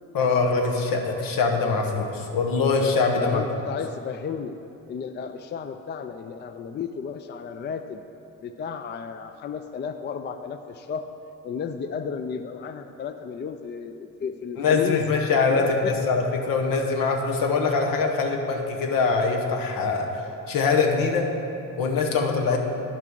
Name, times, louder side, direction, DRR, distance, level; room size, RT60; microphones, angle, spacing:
voice 1, 0.1-3.4 14.6-20.1 20.5-21.3 21.8-22.6, left 4 dB, 75° left, 2 dB, 1.1 m, -23 dB
voice 2, 3.2-4.6 4.9-8.0 8.4-11.1 11.4-15.0 15.5-16.1 22.5-22.6, left 6 dB, 30° left, 8 dB, 0.4 m, -33 dB
9.7 x 6.0 x 4.5 m, 2.7 s
supercardioid pair, 65°, 34 cm